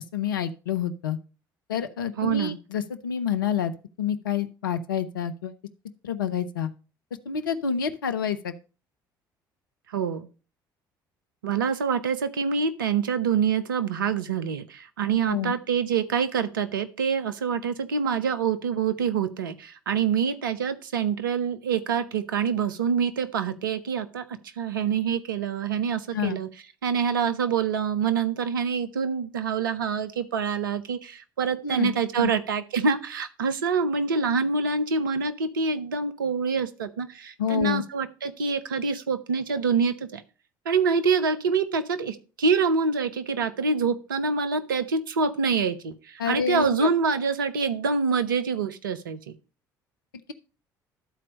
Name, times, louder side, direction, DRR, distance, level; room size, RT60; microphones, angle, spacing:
voice 1, 0.1-1.2 1.7-3.7 4.0-5.5 6.0-6.7 7.3-8.5 15.2-15.5 26.1-26.4 31.6-32.3 37.4-37.8 46.2-46.9, left 8 dB, 75° left, 10 dB, 0.6 m, -28 dB
voice 2, 2.2-2.6 9.9-10.3 11.4-26.5 26.8-40.2 40.7-49.2, right 5 dB, 75° right, 10 dB, 0.7 m, -26 dB
12.5 x 4.3 x 5.2 m, 0.35 s
figure-of-eight pair, 55°, 11 cm